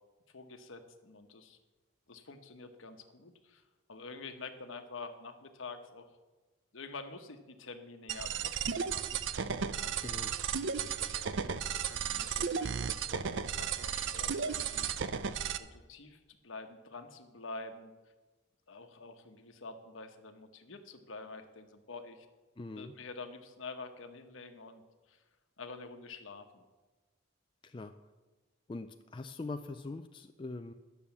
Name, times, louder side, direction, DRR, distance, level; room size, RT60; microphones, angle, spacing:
voice 1, 0.3-1.6 2.1-6.1 6.7-9.2 9.8-10.2 10.6-11.6 12.1-15.1 15.6-17.9 18.7-22.3 22.8-25.2 25.6-26.6, left 3 dB, 70° left, 7 dB, 1.0 m, -48 dB
sound 1, 8.1-15.6, right 7 dB, 60° right, 0.5 m, -34 dB
voice 2, 10.0-10.3 22.6-22.9 27.6-27.9 28.7-30.7, left 3 dB, 25° left, 7 dB, 0.3 m, -42 dB
10.5 x 6.9 x 7.1 m, 1.2 s
head